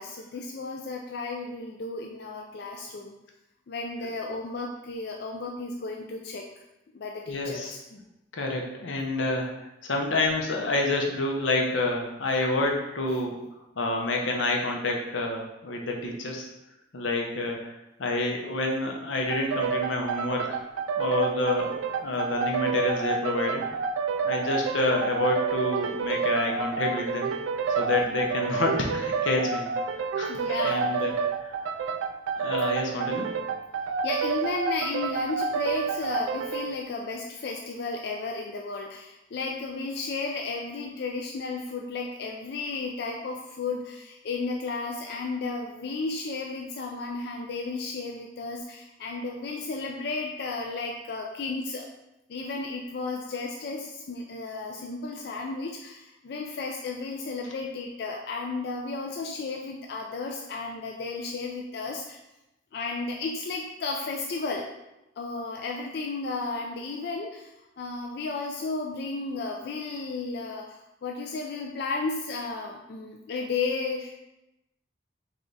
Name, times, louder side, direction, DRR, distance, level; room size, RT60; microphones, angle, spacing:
voice 1, 0.0-3.2 3.7-6.5 6.9-7.8 30.3-30.9 34.0-51.9 52.3-62.2 62.7-64.7 65.2-67.5 67.8-74.2, left 3 dB, 55° left, 1 dB, 0.3 m, -33 dB
voice 2, 7.3-8.0 8.3-9.5 9.8-13.4 13.8-16.5 16.9-17.7 18.0-20.6 21.0-21.8 22.0-23.6 24.2-27.3 27.8-29.7 30.2-31.2 31.4-31.6 32.3-33.3 57.4-57.5, left 2 dB, 85° left, 1 dB, 0.8 m, -28 dB
sound 1, 19.3-36.7, right 5 dB, 85° right, 0.3 m, -29 dB
3.5 x 3.3 x 4.0 m, 0.92 s
head